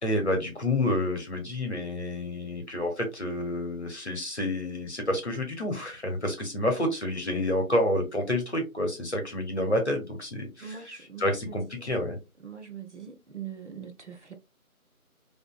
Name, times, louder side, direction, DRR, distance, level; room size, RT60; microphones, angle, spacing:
voice 1, 0.0-10.9 11.2-12.2, left 1 dB, 50° left, 0.8 m, -29 dB
voice 2, 10.6-11.9 12.4-14.3, right 7 dB, 55° right, 0.5 m, -42 dB
2.8 x 2.5 x 2.2 m
figure-of-eight pair, 175°, 44 cm